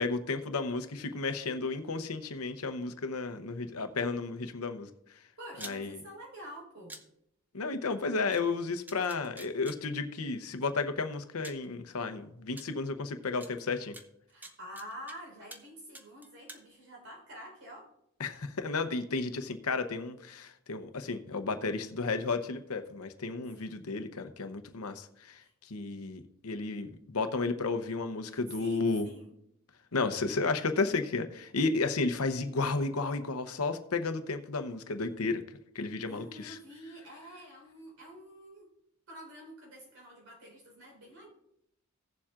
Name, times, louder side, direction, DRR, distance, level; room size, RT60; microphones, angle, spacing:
voice 1, 0.0-4.9 5.6-5.9 7.5-14.0 18.2-29.1 29.9-35.4 35.7-36.6, left 3 dB, 85° left, 8 dB, 0.8 m, -33 dB
voice 2, 5.4-7.0 14.3-17.9 23.6-23.8 25.4-25.5 28.3-29.3 36.0-38.7 39.1-41.3, equal, 70° right, -2 dB, 4.2 m, -48 dB
sound 1, 5.6-5.8 6.9-7.0 8.3-8.4 8.9-9.8 10.8-10.9 11.4-11.7 12.6-12.7 13.4-13.5 13.9-15.2 15.5-15.7 15.9-16.6, right 1 dB, 10° right, 0.6 m, -46 dB
17.5 x 7.2 x 2.5 m, 0.79 s
head